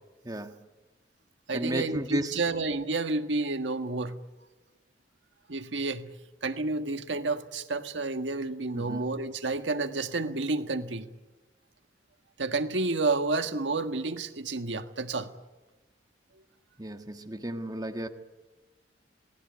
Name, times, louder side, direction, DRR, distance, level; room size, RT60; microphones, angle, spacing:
voice 1, 0.2-0.6 1.5-2.4 8.7-9.0 16.8-18.1, right 1 dB, 20° right, 1.5 m, -33 dB
voice 2, 1.5-4.2 5.5-6.1 6.4-11.1 12.4-15.3, right 3 dB, 90° right, 1.5 m, -30 dB
28.0 x 19.0 x 9.3 m
head